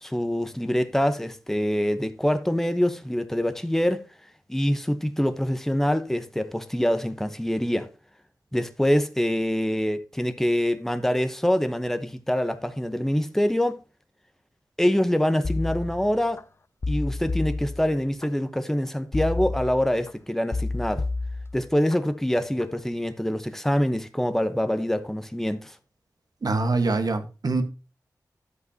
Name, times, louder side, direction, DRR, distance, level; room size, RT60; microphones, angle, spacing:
voice 1, 0.0-4.0 4.5-7.9 8.5-13.8 14.8-16.4 16.9-21.0 21.5-25.8, equal, 5° left, 1.0 m, -25 dB
sound 1, 15.4-16.4 16.8-18.3 19.1-20.1 20.5-22.0 22.4-22.8, left 3 dB, 35° left, 0.4 m, -30 dB
voice 2, 26.4-27.6, right 3 dB, 65° right, 1.5 m, -24 dB
10.5 x 8.1 x 2.8 m
wide cardioid pair, 60°, 7 cm